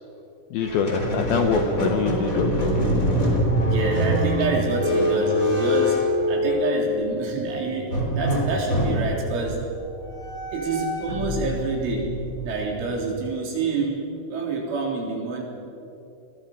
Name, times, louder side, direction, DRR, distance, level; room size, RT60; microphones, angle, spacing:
voice 1, 0.5-2.6, left 5 dB, 75° left, 6 dB, 2.3 m, -24 dB
Squeak, 0.6-7.0 7.9-13.1, equal, 20° left, 3.5 m, -24 dB
voice 2, 3.6-9.6 10.5-12.1 12.4-15.4, right 3 dB, 80° right, -1 dB, 6.2 m, -27 dB
Mallet percussion, 6.4-9.0, left 1 dB, 60° right, 3.7 m, -34 dB
29.0 x 21.5 x 5.5 m, 2.8 s
omnidirectional pair, 5.4 m